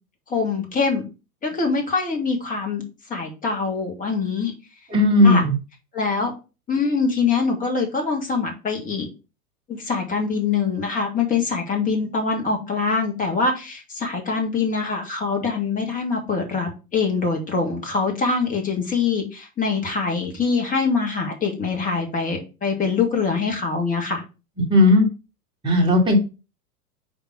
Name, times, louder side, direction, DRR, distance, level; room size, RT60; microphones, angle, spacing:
voice 1, 0.3-1.0 1.4-2.8 3.1-4.5 5.2-5.4 5.9-6.3 6.7-9.1 9.7-24.2, left 4 dB, 15° left, 2 dB, 1.8 m, -24 dB
voice 2, 4.9-5.5 24.6-25.1 25.6-26.2, left 2 dB, 10° right, -2 dB, 2.1 m, -16 dB
5.3 x 4.1 x 5.6 m, 0.31 s
figure-of-eight pair, 95°, 47 cm